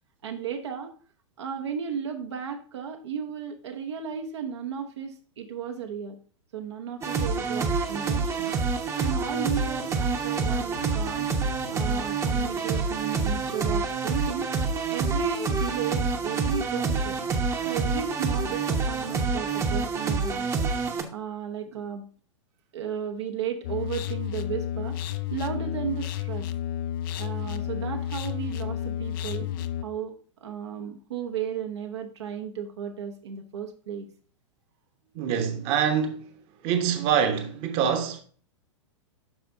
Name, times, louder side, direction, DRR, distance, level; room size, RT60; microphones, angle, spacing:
voice 1, 0.2-0.9 1.4-6.2 6.5-8.5 9.0-11.3 11.7-14.5 14.9-17.2 17.6-20.4 21.1-22.1 22.7-25.0 25.3-26.5 27.2-29.5 29.8-34.1, right 7 dB, 65° right, 1.0 m, -34 dB
sound 1, 7.0-21.0, right 4 dB, 20° right, 0.9 m, -27 dB
sound 2, 10.8-15.2, left 2 dB, 85° left, 1.8 m, -48 dB
sound 3, 23.6-29.8, left 11 dB, 45° left, 0.5 m, -31 dB
voice 2, 35.1-36.3 36.6-38.2, right 8 dB, 40° right, 1.2 m, -25 dB
12.0 x 4.2 x 2.7 m
figure-of-eight pair, 100°, 16 cm